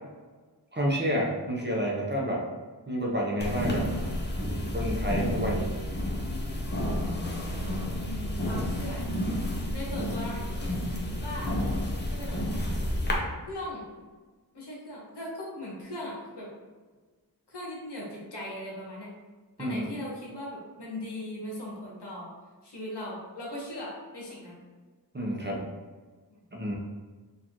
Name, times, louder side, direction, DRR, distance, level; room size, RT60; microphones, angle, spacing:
voice 1, 0.7-2.5 2.9-3.9 4.7-5.7 19.6-19.9 25.1-25.6 26.5-26.8, equal, 25° right, -2 dB, 0.7 m, -29 dB
sound 1, 3.4-13.1, left 1 dB, 25° left, 0.7 m, -30 dB
voice 2, 7.9-9.1 9.7-10.8 11.2-11.5 12.1-12.4 13.4-13.8 14.5-16.5 17.5-19.1 19.6-22.3 22.6-24.6, left 1 dB, 75° left, -4 dB, 1.2 m, -39 dB
4.3 x 2.5 x 2.9 m, 1.4 s
wide cardioid pair, 85°, 41 cm